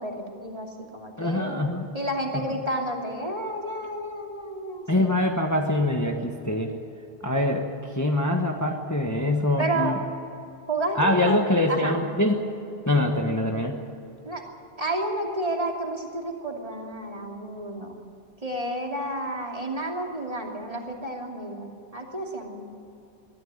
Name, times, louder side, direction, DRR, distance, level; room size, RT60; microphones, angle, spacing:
voice 1, 0.0-1.6 1.9-5.3 9.6-10.0 10.7-11.4 11.7-12.0 14.2-14.4 14.8-17.9 18.4-22.6, right 1 dB, 35° right, 0 dB, 3.0 m, -31 dB
voice 2, 1.2-1.9 4.9-6.7 7.2-10.0 10.9-12.4 12.9-13.8, left 1 dB, 15° left, 2 dB, 1.3 m, -24 dB
21.5 x 13.5 x 9.6 m, 2.8 s
omnidirectional pair, 1.1 m